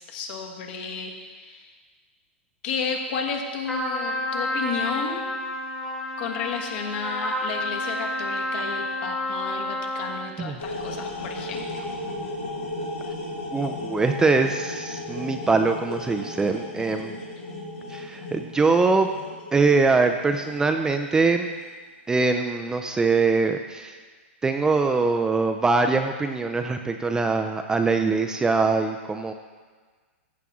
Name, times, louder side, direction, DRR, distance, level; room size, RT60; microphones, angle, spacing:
voice 1, 0.0-1.7 2.6-5.3 6.2-11.9, left 5 dB, 50° left, 2 dB, 1.4 m, -32 dB
Trumpet, 3.7-10.4, left 1 dB, 10° left, 1.3 m, -30 dB
sound 1, 10.6-21.5, left 1 dB, 90° left, 3.1 m, -35 dB
voice 2, 13.5-17.2 17.9-19.1 19.5-21.6 22.1-24.0 24.4-29.3, right 4 dB, 10° right, 5 dB, 0.4 m, -23 dB
14.5 x 5.7 x 3.6 m, 1.5 s
hypercardioid pair, 135°, 7 cm